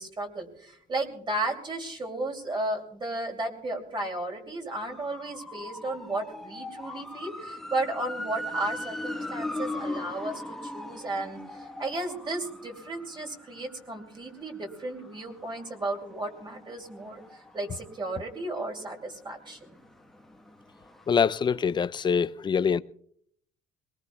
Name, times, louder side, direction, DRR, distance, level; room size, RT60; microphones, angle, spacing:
voice 1, 0.0-19.7, right 2 dB, 30° right, 2.6 m, -34 dB
sound 1, 4.7-18.4 18.8-21.4 21.7-21.8, left 1 dB, ahead, 1.2 m, -40 dB
voice 2, 21.1-22.8, left 6 dB, 25° left, 0.4 m, -24 dB
22.0 x 19.5 x 2.3 m
cardioid pair, 110°, 17 cm